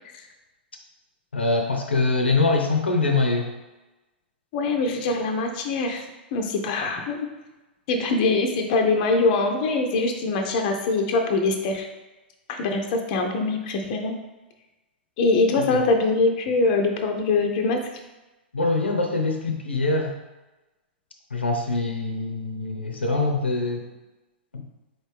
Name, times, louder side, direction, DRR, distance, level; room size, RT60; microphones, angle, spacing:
voice 1, 1.3-3.5 15.6-15.8 18.5-20.1 21.3-23.9 24.5-24.6, left 3 dB, 90° left, 3 dB, 0.6 m, -24 dB
voice 2, 4.5-6.0 6.3-7.3 7.9-11.9 12.5-14.1 15.2-17.8, left 3 dB, 45° left, 4 dB, 0.6 m, -23 dB
4.2 x 3.1 x 3.3 m, 1.1 s
hypercardioid pair, 110°, 6 cm